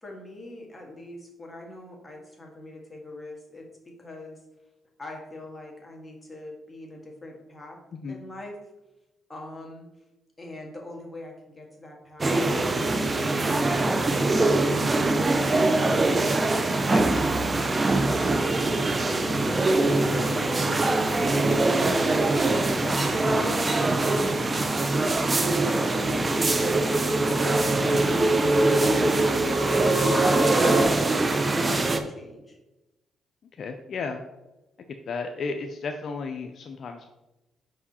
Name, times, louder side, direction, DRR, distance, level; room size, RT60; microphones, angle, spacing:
voice 1, 0.0-4.4 5.0-7.8 8.1-8.6 9.3-9.9 10.4-16.2 17.3-22.3 22.8-24.8 25.5-27.4 27.7-32.6, left 1 dB, 15° left, -1 dB, 1.8 m, -43 dB
voice 2, 7.9-8.2 16.9-17.1 33.6-34.2 35.1-37.1, left 4 dB, 55° left, 5 dB, 0.5 m, -33 dB
sound 1, 12.2-32.0, right 2 dB, 25° right, 0.6 m, -23 dB
sound 2, 12.7-18.3 18.8-30.8, right 1 dB, 45° right, 1.9 m, -30 dB
5.4 x 4.8 x 4.3 m, 1.0 s
cardioid pair, 90°, 0 cm